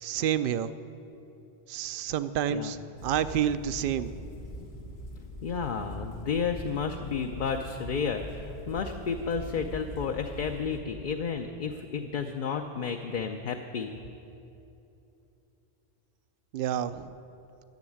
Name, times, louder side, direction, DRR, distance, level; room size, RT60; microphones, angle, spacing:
voice 1, 0.0-0.7 1.7-4.1 16.5-17.1, right 9 dB, 65° right, 13 dB, 0.7 m, -29 dB
sound 1, 3.0-10.8, left 1 dB, 80° left, 1.5 m, -42 dB
voice 2, 5.4-13.9, left 6 dB, 55° left, 4 dB, 0.7 m, -32 dB
13.5 x 7.2 x 9.9 m, 2.9 s
omnidirectional pair, 1.0 m